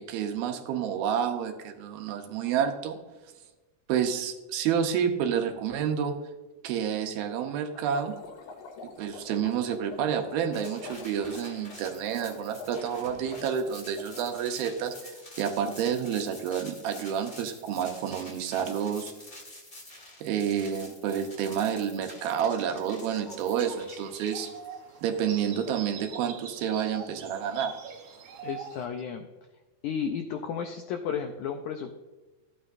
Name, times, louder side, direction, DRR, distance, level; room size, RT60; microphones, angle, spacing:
voice 1, 0.0-3.0 3.9-6.1 6.6-8.2 9.0-15.1 15.4-19.1 20.2-24.5 25.0-27.8, right 8 dB, 85° right, 5 dB, 2.8 m, -29 dB
sound 1, 7.7-14.2, left 5 dB, 70° left, 2.8 m, -46 dB
sound 2, 10.5-25.0, left 1 dB, 35° left, 0.9 m, -48 dB
sound 3, 23.2-28.8, right 6 dB, 65° right, 2.3 m, -43 dB
voice 2, 28.4-29.3 29.8-31.9, left 7 dB, 85° left, 5 dB, 1.7 m, -33 dB
13.5 x 9.0 x 2.6 m, 1.2 s
omnidirectional pair, 4.2 m